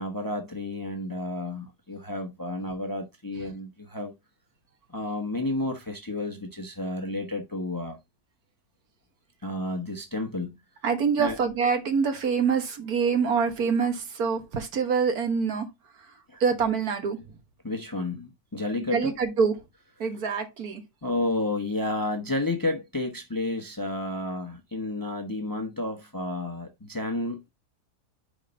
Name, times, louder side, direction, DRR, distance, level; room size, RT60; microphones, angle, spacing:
voice 1, 0.0-4.1 4.9-8.0 9.4-10.6 11.2-11.3 16.3-16.4 17.6-19.1 21.0-27.5, left 2 dB, 15° left, 0.9 m, -31 dB
voice 2, 10.8-15.7 16.0-16.1 16.4-17.2 18.9-19.6 20.0-20.8, right 5 dB, 65° right, 1.8 m, -25 dB
5.1 x 4.5 x 5.2 m
omnidirectional pair, 1.7 m